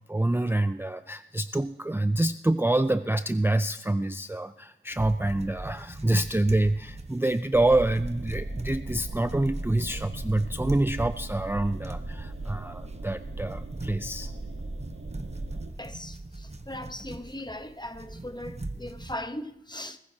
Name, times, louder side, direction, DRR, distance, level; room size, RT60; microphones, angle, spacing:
voice 1, 0.1-14.4, right 1 dB, 10° right, 0.4 m, -26 dB
sound 1, 4.9-19.2, right 2 dB, 30° right, 1.1 m, -41 dB
sound 2, 7.5-15.7, right 2 dB, 75° right, 1.2 m, -38 dB
voice 2, 15.8-20.0, left 1 dB, 20° left, 0.9 m, -39 dB
21.5 x 15.0 x 2.8 m
wide cardioid pair, 45°, 21 cm